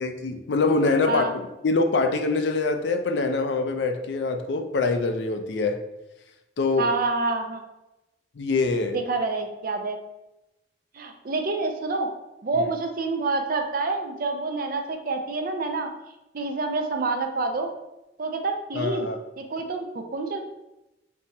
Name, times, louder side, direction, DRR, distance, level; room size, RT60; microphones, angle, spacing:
voice 1, 0.0-5.8 6.6-6.9 8.4-9.0 12.6-12.7 18.7-19.2, left 3 dB, 70° left, 6 dB, 0.4 m, -24 dB
voice 2, 6.8-7.6 8.9-10.0 10.9-12.1 12.4-15.9 16.3-17.7 18.2-19.1 19.4-20.4, right 3 dB, 50° right, 4 dB, 0.5 m, -27 dB
3.6 x 2.8 x 4.1 m, 0.96 s
head